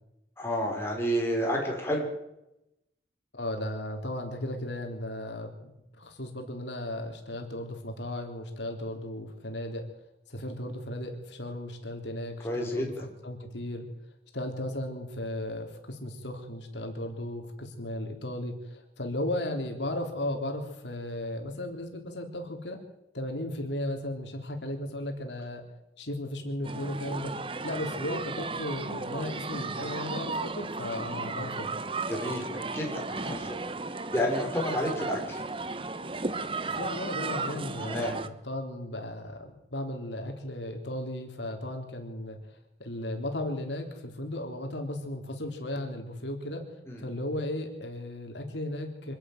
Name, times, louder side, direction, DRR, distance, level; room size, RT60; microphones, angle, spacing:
voice 1, 0.4-2.1 12.4-12.8 32.0-33.6 34.1-35.4 37.8-38.1 46.9-47.0, equal, 15° left, 0 dB, 5.0 m, -30 dB
voice 2, 3.3-9.9 10.3-13.9 14.3-22.8 23.1-25.6 26.0-27.3 27.6-31.7 36.8-38.2 38.4-42.4 42.8-46.6 47.0-49.2, left 1 dB, 85° left, 3 dB, 3.7 m, -35 dB
sound 1, 26.6-38.3, right 3 dB, 30° right, 1.0 m, -35 dB
25.5 x 11.5 x 9.4 m, 0.88 s
head